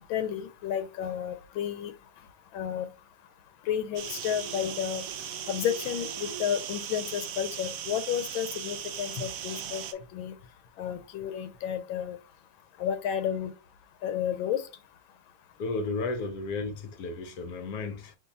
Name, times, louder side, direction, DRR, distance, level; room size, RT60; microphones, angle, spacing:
voice 1, 0.1-1.9 2.5-2.9 3.6-10.4 10.8-12.2 12.8-13.5 14.0-14.7, left 9 dB, 85° left, 1.4 m, -32 dB
sound 1, 4.0-9.9, right 9 dB, 80° right, 0.7 m, -38 dB
voice 2, 15.6-18.1, left 3 dB, 65° left, 0.9 m, -33 dB
4.6 x 2.8 x 4.0 m
omnidirectional pair, 2.1 m